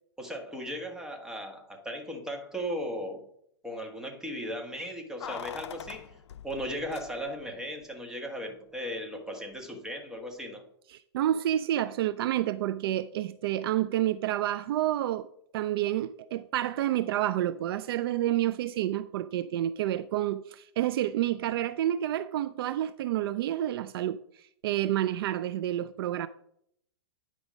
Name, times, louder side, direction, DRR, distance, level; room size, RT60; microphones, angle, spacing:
voice 1, 0.2-3.2 3.6-6.1 6.4-10.6, equal, 5° right, 1.4 m, -37 dB
Keys jangling, 5.2-7.6 7.8-7.9, left 9 dB, 80° left, 0.5 m, -43 dB
voice 2, 10.9-15.3 15.5-26.3, right 13 dB, 60° right, 0.4 m, -29 dB
9.8 x 4.8 x 5.1 m
hypercardioid pair, 135°, 14 cm